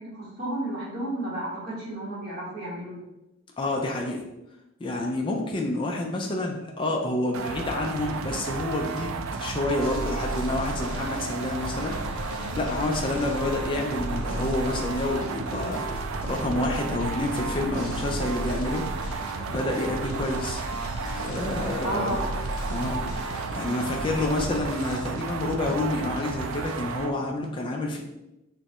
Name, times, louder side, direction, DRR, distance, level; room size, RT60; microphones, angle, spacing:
voice 1, 0.0-3.0 21.8-22.3, right 1 dB, 50° right, -6 dB, 1.5 m, -32 dB
voice 2, 3.6-4.3 4.8-19.1 19.5-20.6 21.2-22.2 22.7-23.1 23.5-28.0, left 2 dB, 25° left, 0 dB, 0.4 m, -29 dB
sound 1, 7.3-27.1, right 4 dB, 75° right, 0.4 m, -33 dB
sound 2, 9.8-25.1, left 1 dB, 90° left, 0.8 m, -36 dB
6.4 x 2.2 x 2.9 m, 0.94 s
head